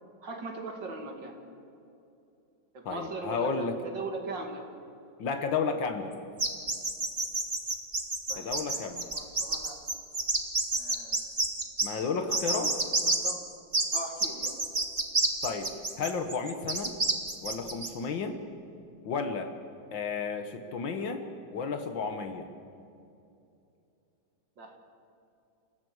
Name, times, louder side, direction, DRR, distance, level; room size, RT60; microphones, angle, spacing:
voice 1, 0.2-1.4 2.7-4.6 8.3-9.8 10.7-11.2 12.3-12.6 13.0-13.4 13.9-14.6 24.6-24.8, right 3 dB, 70° right, 3 dB, 3.0 m, -40 dB
voice 2, 2.9-3.8 5.2-6.1 8.4-9.0 11.8-12.7 15.4-15.7 16.0-17.0 17.4-18.4 19.0-19.5 19.9-21.3 21.5-22.5, left 5 dB, 75° left, 7 dB, 2.0 m, -32 dB
sound 1, 6.4-11.9 12.3-13.3 13.7-17.9, right 2 dB, 25° right, 1.9 m, -28 dB
29.0 x 16.0 x 8.0 m, 2.7 s
omnidirectional pair, 2.0 m